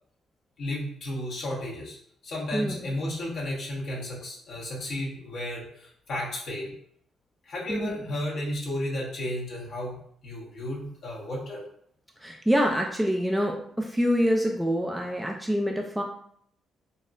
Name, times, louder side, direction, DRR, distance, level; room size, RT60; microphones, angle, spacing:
voice 1, 0.6-2.0 2.2-6.7 7.4-10.0 10.2-11.6, left 1 dB, 65° left, -5 dB, 1.1 m, -33 dB
voice 2, 2.5-2.8 7.7-8.0 12.2-16.0, equal, 5° right, 1 dB, 0.4 m, -26 dB
4.1 x 2.0 x 2.5 m, 0.66 s
cardioid pair, 90°, 0 cm